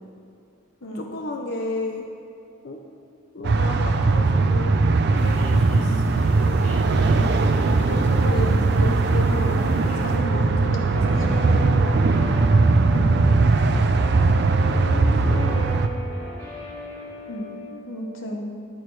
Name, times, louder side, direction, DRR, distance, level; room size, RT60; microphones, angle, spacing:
voice 1, 0.9-2.1 2.6-2.8 3.3-4.8 5.1-5.9 7.9-9.6 10.0-12.0 14.7-15.8, left 2 dB, 50° left, 3 dB, 0.5 m, -32 dB
sound 1, 3.4-15.9, right 3 dB, 50° right, 0.4 m, -19 dB
sound 2, 5.1-10.2, equal, 35° left, 1.6 m, -39 dB
voice 2, 5.7-6.1 7.0-7.3 11.0-11.5 12.9-13.2 17.3-17.6 17.9-18.5, equal, 70° left, 0 dB, 1.0 m, -34 dB
Guitar, 9.0-17.7, right 1 dB, 10° left, 1.9 m, -37 dB
10.5 x 8.8 x 3.2 m, 2.6 s
head